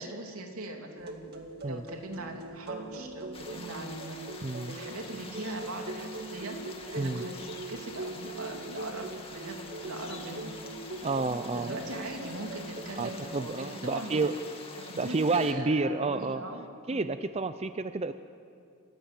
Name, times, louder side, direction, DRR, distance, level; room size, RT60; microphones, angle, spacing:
voice 1, 0.0-1.4 1.6-4.3 4.7-6.6 6.9-10.5 11.5-14.3 14.8-16.6 16.9-17.0, right 2 dB, 80° right, 2 dB, 3.1 m, -40 dB
sound 1, 1.0-13.3, right 2 dB, 50° right, 2.1 m, -42 dB
sound 2, 3.3-15.5, left 4 dB, 25° left, 2.4 m, -46 dB
voice 2, 4.4-4.8 7.0-7.2 11.0-11.7 13.0-14.4 15.0-16.4 16.9-18.1, right 3 dB, 30° right, 11 dB, 0.5 m, -30 dB
28.5 x 15.5 x 8.3 m, 2.4 s
head